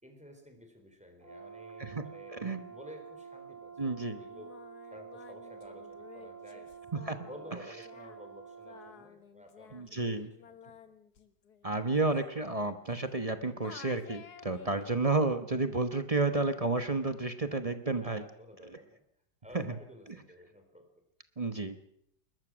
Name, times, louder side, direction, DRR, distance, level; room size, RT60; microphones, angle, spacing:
voice 1, 0.0-2.4 2.7-4.5 4.9-6.8 7.2-10.9 17.4-17.6 18.0-19.0 19.4-20.9, equal, 5° right, 4 dB, 3.8 m, -52 dB
Brass instrument, 1.2-8.9, right 6 dB, 60° right, 6.6 m, -49 dB
voice 2, 2.3-2.7 3.8-4.2 7.0-7.3 9.7-10.3 11.6-18.2 18.7-18.8 19.5-19.7 21.4-21.8, right 3 dB, 25° right, 9 dB, 0.9 m, -31 dB
Singing, 4.3-13.3 13.6-15.0, left 7 dB, 60° left, 1.9 m, -54 dB
21.5 x 20.0 x 6.3 m, 0.73 s
omnidirectional pair, 1.9 m